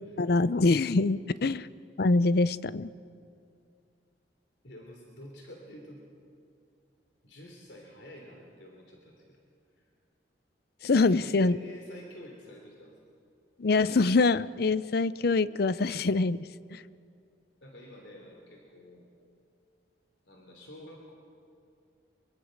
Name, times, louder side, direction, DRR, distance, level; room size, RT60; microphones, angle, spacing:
voice 1, 0.2-1.7 2.0-2.9 10.8-11.6 13.6-16.8, left 3 dB, 60° left, 17 dB, 0.5 m, -25 dB
voice 2, 4.6-6.0 7.2-9.4 9.7-9.9 11.1-12.9 17.6-19.1 20.2-21.1, left 1 dB, 85° left, 1 dB, 3.3 m, -48 dB
24.0 x 23.0 x 6.5 m, 2.4 s
head